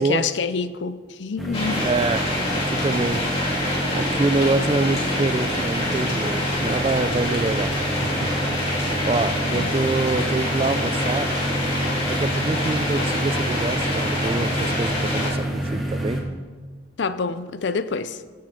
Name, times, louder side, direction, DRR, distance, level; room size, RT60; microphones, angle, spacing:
voice 1, 0.0-1.9 9.5-9.7 17.0-18.2, left 5 dB, 65° left, 13 dB, 0.5 m, -27 dB
sound 1, 1.4-16.2, right 1 dB, ahead, 1.2 m, -28 dB
sound 2, 1.5-15.3, left 1 dB, 30° left, 3.1 m, -26 dB
voice 2, 1.8-3.2 3.9-7.7 8.0-8.3 9.1-11.3 12.2-16.2, right 3 dB, 30° right, 12 dB, 0.3 m, -25 dB
14.5 x 7.2 x 3.8 m, 1.5 s
head